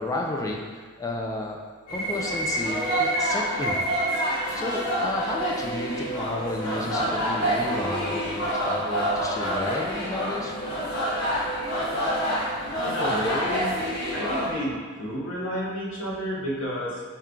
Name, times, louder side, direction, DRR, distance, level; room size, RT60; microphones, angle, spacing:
voice 1, 0.0-1.6 1.9-3.8 4.5-10.5, left 2 dB, 15° left, 0 dB, 0.3 m, -32 dB
sound 1, 1.9-14.5, equal, 85° left, 1.0 m, -27 dB
voice 2, 12.8-13.8 14.1-17.0, equal, 55° left, -5 dB, 0.9 m, -30 dB
4.2 x 2.3 x 3.6 m, 1.6 s
head